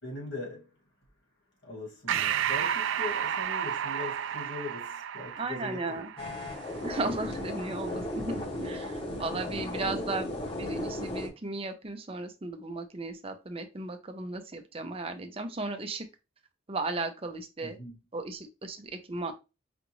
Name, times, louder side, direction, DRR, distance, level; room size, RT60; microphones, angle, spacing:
voice 1, 0.0-0.7 1.6-6.3 9.4-10.3 17.6-17.9, left 2 dB, 65° left, 1.9 m, -41 dB
Breathing, 2.1-7.0, right 9 dB, 75° right, 0.3 m, -32 dB
voice 2, 5.4-6.1 6.8-8.3 8.6-16.1 16.7-17.8 18.1-19.3, right 3 dB, 30° right, 0.6 m, -35 dB
sound 1, 6.2-11.3, left 1 dB, 30° left, 1.0 m, -35 dB
5.0 x 2.4 x 3.0 m
head